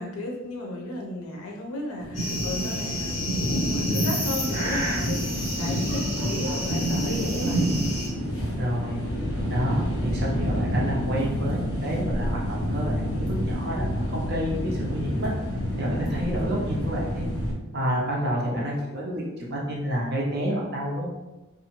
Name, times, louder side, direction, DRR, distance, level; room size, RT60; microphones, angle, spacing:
voice 1, 0.0-7.7, left 1 dB, 80° left, 0 dB, 0.6 m, -34 dB
sound 1, 2.0-17.5, equal, 15° left, 0.7 m, -30 dB
sound 2, 2.1-8.1, equal, 30° left, 1.3 m, -27 dB
voice 2, 8.6-9.0 9.5-15.3 15.8-17.2 17.7-21.1, equal, 45° right, -3 dB, 0.6 m, -29 dB
2.6 x 2.4 x 2.9 m, 1.1 s
head